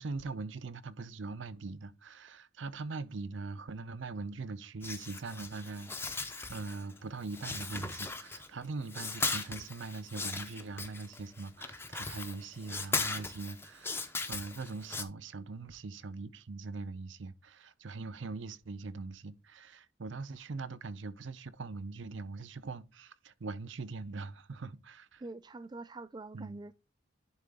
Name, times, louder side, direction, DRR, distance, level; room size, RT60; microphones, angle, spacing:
voice 1, 0.0-25.2 26.3-26.6, right 3 dB, 70° right, 0.6 m, -42 dB
sound 1, 4.8-7.0 7.2-8.6 8.9-15.0, left 3 dB, 10° left, 0.6 m, -38 dB
voice 2, 25.2-26.7, right 2 dB, 20° right, 0.3 m, -45 dB
10.5 x 3.8 x 3.5 m
head